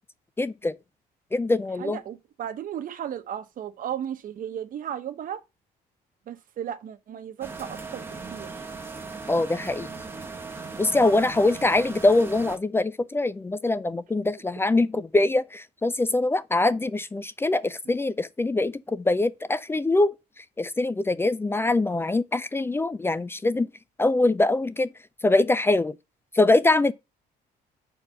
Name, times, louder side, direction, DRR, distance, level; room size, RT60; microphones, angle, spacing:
voice 1, 0.4-0.8 1.3-2.0 9.3-9.9 10.8-20.1 20.6-23.7 24.0-24.9 25.2-25.9 26.3-26.9, left 2 dB, 15° left, 0.4 m, -23 dB
voice 2, 1.8-5.4 6.3-8.0 8.3-8.5, right 9 dB, 55° right, 1.1 m, -35 dB
sound 1, 7.4-12.6, right 4 dB, 15° right, 1.0 m, -38 dB
5.1 x 4.6 x 5.5 m
cardioid pair, 110°, 17 cm